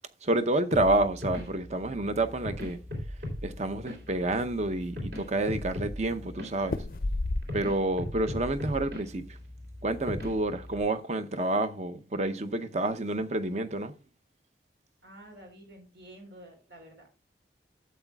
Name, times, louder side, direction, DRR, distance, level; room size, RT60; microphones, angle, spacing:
voice 1, 0.2-2.8 3.4-6.8 7.5-9.4 9.8-13.9, right 2 dB, 40° right, 0.7 m, -29 dB
sound 1, 0.7-10.8, left 1 dB, 60° right, 3.2 m, -39 dB
sound 2, 2.8-3.7 4.1-4.2 4.5-5.2 6.6-7.9 8.2-8.7, left 2 dB, 50° left, 0.5 m, -33 dB
voice 2, 15.0-17.1, right 1 dB, 85° right, 3.9 m, -50 dB
12.5 x 8.1 x 2.3 m
head